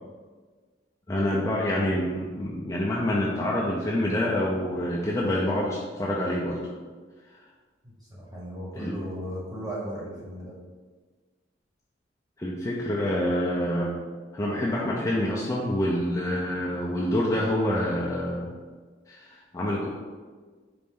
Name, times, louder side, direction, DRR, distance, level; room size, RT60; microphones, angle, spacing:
voice 1, 1.1-6.6 8.7-9.0 12.4-13.9 14.3-18.5 19.1-19.9, left 1 dB, 15° left, -5 dB, 0.3 m, -27 dB
voice 2, 8.0-10.6, equal, 20° right, -6 dB, 0.9 m, -36 dB
4.2 x 2.5 x 3.5 m, 1.4 s
head